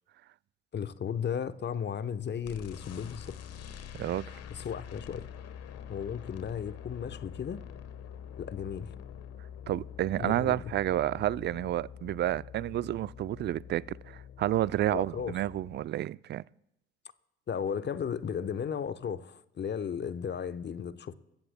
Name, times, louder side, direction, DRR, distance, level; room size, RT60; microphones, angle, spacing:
voice 1, 0.7-3.3 4.5-5.3 5.9-7.6 8.4-8.9 10.2-10.6 14.9-15.3 17.5-21.1, left 7 dB, 35° left, 0.9 m, -35 dB
sound 1, 2.4-15.8, left 8 dB, 50° left, 1.3 m, -46 dB
voice 2, 3.9-4.3 9.7-16.4, right 13 dB, 35° right, 0.4 m, -30 dB
28.0 x 14.5 x 2.2 m
hypercardioid pair, 60°, 31 cm